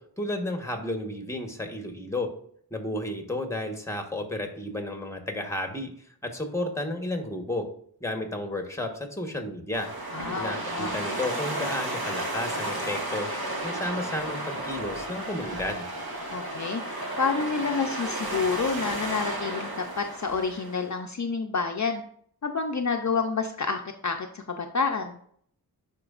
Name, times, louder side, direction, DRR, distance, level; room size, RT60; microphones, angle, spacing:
voice 1, 0.2-2.3 2.7-5.9 6.2-7.7 8.0-9.9 10.4-13.3 13.6-15.8, left 1 dB, 5° left, 5 dB, 1.2 m, -32 dB
sound 1, 9.7-20.9, right 1 dB, 70° right, 1.8 m, -33 dB
voice 2, 10.1-10.9 16.3-22.0 22.4-25.2, left 5 dB, 50° left, 4 dB, 0.6 m, -29 dB
11.0 x 4.5 x 2.5 m, 0.63 s
wide cardioid pair, 65°, 38 cm